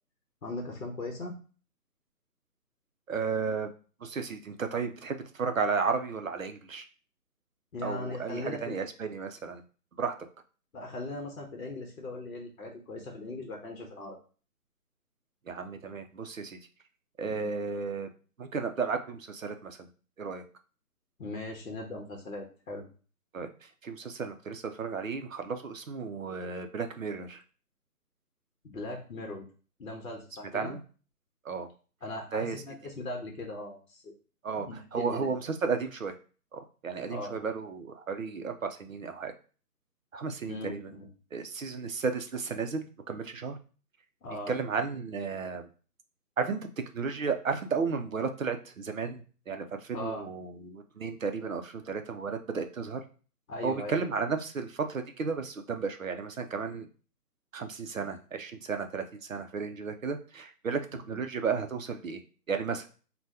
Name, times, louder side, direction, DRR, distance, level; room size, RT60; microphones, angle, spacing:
voice 1, 0.4-1.3 7.7-8.8 10.7-14.2 17.2-17.5 21.2-22.9 28.6-29.5 29.8-30.8 32.0-34.1 34.7-35.3 37.1-37.4 40.5-41.1 44.2-44.5 49.9-50.2 53.5-54.0 57.9-58.1 61.1-61.2, left 2 dB, 55° left, 2 dB, 0.9 m, -39 dB
voice 2, 3.1-3.7 4.0-6.9 7.8-9.6 10.0-10.1 15.5-16.6 17.2-18.1 18.4-19.8 20.2-20.4 23.3-27.4 30.5-30.8 31.4-31.7 32.3-32.6 34.4-36.1 36.5-39.3 40.1-40.9 41.3-43.6 44.5-45.7 46.4-46.6 46.9-53.0 53.6-56.9 57.5-60.8 61.1-62.2 62.5-62.9, right 5 dB, 55° right, 7 dB, 0.5 m, -33 dB
2.7 x 2.2 x 3.4 m, 0.37 s
hypercardioid pair, 175°, 48 cm